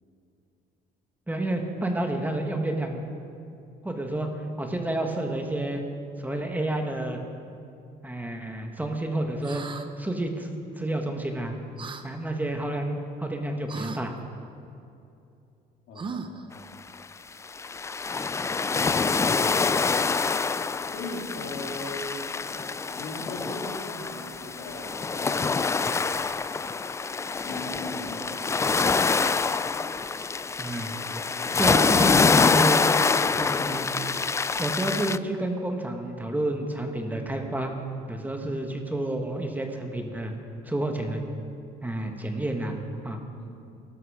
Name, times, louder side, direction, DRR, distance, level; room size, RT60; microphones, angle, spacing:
voice 1, 1.3-3.0 3.8-4.3 4.6-5.8 6.2-7.2 8.0-9.7 10.0-11.5 12.0-14.1 30.6-31.0 31.6-32.8 33.4-33.9 34.6-37.7 38.1-40.3 40.6-41.2 41.8-42.8 43.0-43.2, right 1 dB, 10° right, 3 dB, 1.6 m, -29 dB
sound 1, 9.4-9.9 11.8-12.0 13.7-14.0 15.9-16.5, right 4 dB, 30° right, 1.0 m, -37 dB
voice 2, 15.9-16.7 18.8-19.3 20.9-22.2 22.9-26.3 27.4-28.5 43.4-43.6, left 2 dB, 85° left, -2 dB, 3.3 m, -39 dB
sound 2, 16.9-17.0 17.4-35.2, left 4 dB, 15° left, 0.3 m, -25 dB
19.0 x 12.5 x 5.0 m, 2.7 s
cardioid pair, 110°, 17 cm